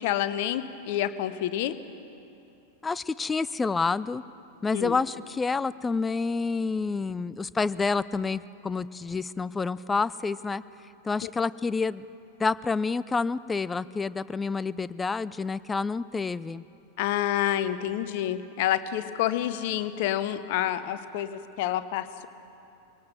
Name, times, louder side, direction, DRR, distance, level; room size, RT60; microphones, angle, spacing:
voice 1, 0.0-1.7 4.7-5.0 11.2-11.3 17.0-22.3, left 12 dB, 50° left, 12 dB, 0.9 m, -28 dB
voice 2, 2.8-4.2 4.6-10.6 11.0-12.0 12.4-16.7, left 4 dB, 15° left, 17 dB, 0.4 m, -28 dB
23.5 x 18.0 x 6.8 m, 2.7 s
figure-of-eight pair, 90°, 0 cm